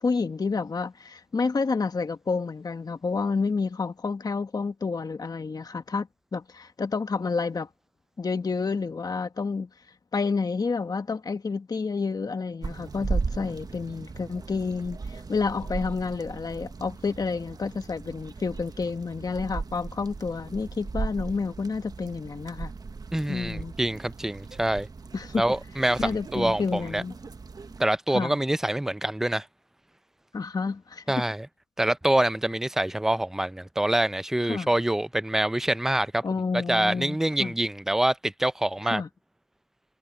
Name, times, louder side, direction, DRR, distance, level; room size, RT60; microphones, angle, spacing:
voice 1, 0.0-7.7 8.2-9.7 10.1-22.7 23.3-23.7 25.1-25.4 26.0-27.1 28.1-28.4 30.3-31.0 34.5-34.7 36.2-37.5 38.8-39.1, left 4 dB, 20° left, 1.5 m, -29 dB
sound 1, 12.6-27.9, right 4 dB, 20° right, 1.1 m, -37 dB
voice 2, 23.1-24.9 25.4-27.0 27.8-29.5 31.1-31.5 31.8-36.2 36.5-39.0, right 1 dB, ahead, 0.4 m, -26 dB
cardioid pair, 110°, 17 cm